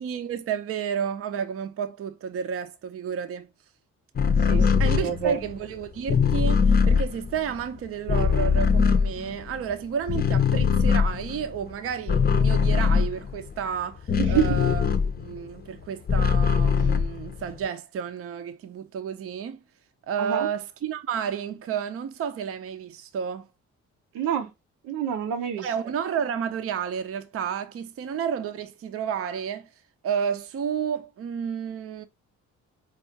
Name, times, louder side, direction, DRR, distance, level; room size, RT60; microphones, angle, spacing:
voice 1, 0.0-3.5 4.8-14.9 15.2-19.6 20.1-23.5 25.6-29.7 30.0-32.0, right 7 dB, 50° right, 0.6 m, -31 dB
sound 1, 4.2-9.7 10.0-15.5 15.8-17.7, left 6 dB, 30° left, 0.5 m, -22 dB
voice 2, 5.0-5.3 14.2-14.6 20.2-20.5 24.1-24.5 24.8-25.7, right 9 dB, 85° right, 0.8 m, -27 dB
4.5 x 2.4 x 2.8 m
cardioid pair, 90°, 30 cm